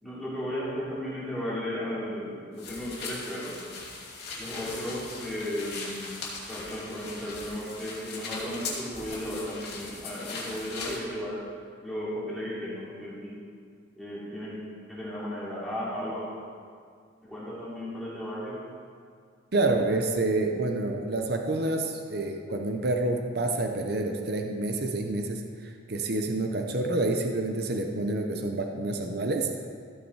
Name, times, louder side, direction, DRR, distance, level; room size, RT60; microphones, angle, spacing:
voice 1, 0.0-3.6 4.4-6.2 6.5-11.4 11.8-13.4 14.0-14.6 14.9-16.3 17.2-18.6, equal, ahead, -9 dB, 3.0 m, -35 dB
sound 1, 2.6-11.0, left 3 dB, 55° left, 2.5 m, -39 dB
voice 2, 19.5-25.4 25.9-29.5, right 2 dB, 50° right, 4 dB, 0.7 m, -28 dB
14.5 x 6.8 x 4.8 m, 2.1 s
head